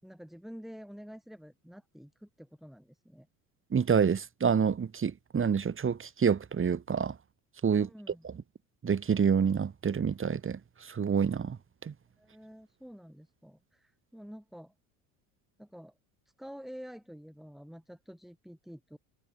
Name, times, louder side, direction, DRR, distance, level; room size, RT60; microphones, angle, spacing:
voice 1, 0.0-3.3 7.7-8.3 12.2-14.7 15.6-15.9 16.4-19.0, equal, ahead, 5.4 m, -48 dB
voice 2, 3.7-7.1 7.6-7.9 8.8-10.6 10.9-11.6 11.8-11.9, right 6 dB, 30° right, 2.3 m, -27 dB
hypercardioid pair, 75°, 42 cm